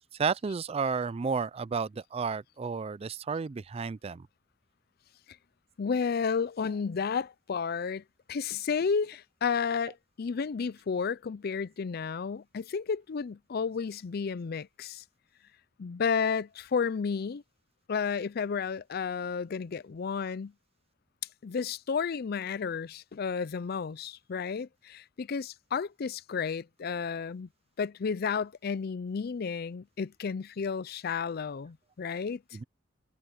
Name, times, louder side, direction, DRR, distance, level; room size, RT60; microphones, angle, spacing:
voice 1, 0.1-4.3 32.5-32.6, right 5 dB, 30° right, 0.4 m, -32 dB
voice 2, 5.8-8.0 8.3-15.0 15.8-17.4 17.9-20.5 21.4-27.5 27.8-32.4, left 6 dB, 55° left, 0.4 m, -32 dB
head